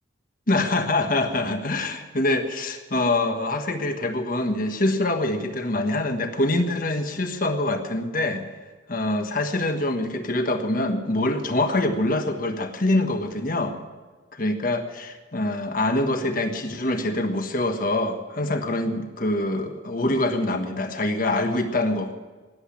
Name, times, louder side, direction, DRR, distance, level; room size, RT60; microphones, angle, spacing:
voice 1, 0.5-8.4 8.9-13.8 14.4-22.1, left 2 dB, 45° left, 6 dB, 1.4 m, -25 dB
19.0 x 8.2 x 8.7 m, 1.4 s
head